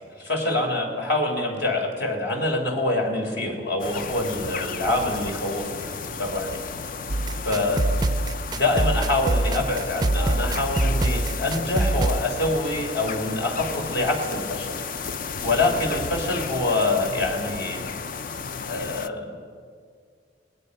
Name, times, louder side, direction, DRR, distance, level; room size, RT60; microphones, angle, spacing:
voice 1, 0.2-6.6 7.4-7.9 8.5-14.8 15.2-17.9 18.6-19.4, left 2 dB, 65° left, 2 dB, 3.6 m, -25 dB
sound 1, 3.8-19.1, left 5 dB, 50° left, 0.6 m, -33 dB
sound 2, 7.1-12.2, right 2 dB, 25° right, 0.4 m, -24 dB
26.5 x 19.5 x 5.4 m, 2.1 s
head